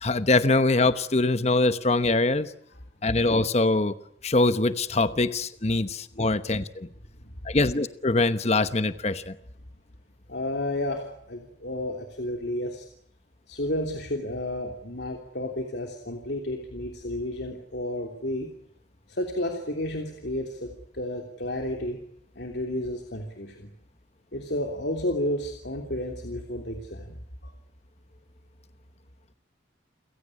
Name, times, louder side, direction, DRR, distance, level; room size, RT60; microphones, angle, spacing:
voice 1, 0.0-2.5 3.0-3.9 4.2-6.9 7.4-9.4, left 2 dB, 35° left, 13 dB, 1.0 m, -23 dB
voice 2, 10.3-12.8 13.5-18.5 19.1-22.0 22.3-23.7 24.3-27.5, left 1 dB, 65° left, 3 dB, 3.2 m, -32 dB
29.5 x 16.5 x 9.8 m, 0.70 s
head